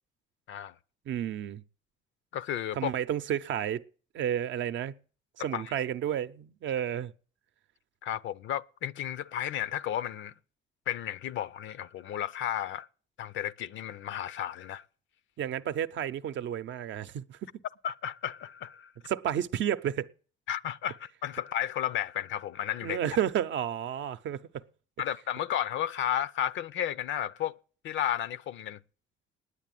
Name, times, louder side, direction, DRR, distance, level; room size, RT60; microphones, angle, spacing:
voice 1, 1.1-1.6 2.8-3.8 4.1-5.0 5.4-7.1 15.4-17.4 19.1-20.1 22.8-24.6, right 10 dB, 70° right, 0.6 m, -31 dB
voice 2, 2.3-2.9 5.4-5.7 8.0-10.3 10.9-12.9 13.2-14.8 17.8-18.9 20.5-23.0 25.0-27.6 27.8-28.8, left 10 dB, 75° left, 0.6 m, -33 dB
9.9 x 8.2 x 9.1 m
cardioid pair, 90°, 20 cm